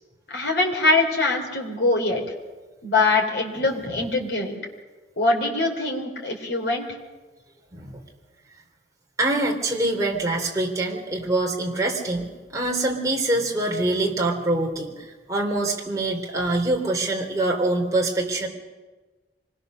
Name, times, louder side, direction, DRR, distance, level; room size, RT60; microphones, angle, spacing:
voice 1, 0.3-2.2 2.8-4.6 5.2-6.8, left 2 dB, 85° left, 1 dB, 3.8 m, -23 dB
voice 2, 9.2-14.9 15.3-18.5, right 2 dB, 20° right, 0 dB, 3.2 m, -24 dB
25.5 x 20.0 x 6.5 m, 1.2 s
head